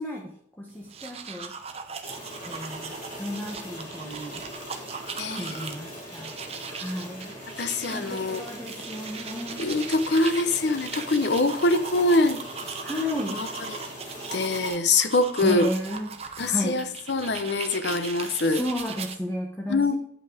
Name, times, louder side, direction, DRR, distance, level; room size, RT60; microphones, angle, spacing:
voice 1, 0.0-1.5 2.4-4.4 5.3-7.3 7.9-9.6 12.8-13.4 15.4-16.8 18.4-19.9, left 1 dB, 10° left, -2 dB, 0.9 m, -33 dB
sound 1, 0.8-19.2, right 6 dB, 35° right, 0.7 m, -39 dB
sound 2, 2.0-14.7, equal, 45° left, 2.9 m, -41 dB
voice 2, 5.2-5.6 7.6-8.4 9.6-12.4 13.3-13.8 14.3-15.7 16.4-18.6 19.7-19.9, left 2 dB, 70° left, 10 dB, 0.7 m, -24 dB
8.7 x 5.5 x 4.9 m, 0.65 s
head